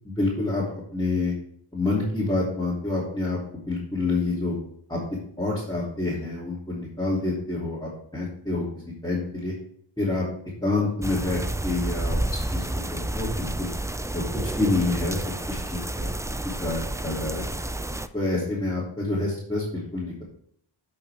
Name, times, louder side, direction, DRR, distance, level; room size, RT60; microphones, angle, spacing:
voice 1, 0.0-1.3 1.7-3.4 3.7-4.5 4.9-5.0 5.4-8.6 9.0-9.5 10.0-10.2 10.6-12.2 12.5-12.6 12.9-13.7 14.1-15.2 15.5-16.1 16.4-17.5 18.1-20.2, left 2 dB, 10° left, -8 dB, 2.8 m, -27 dB
sound 1, 11.0-18.1, right 1 dB, 5° right, 0.3 m, -30 dB
12.0 x 5.8 x 3.5 m, 0.68 s
wide cardioid pair, 65°, 49 cm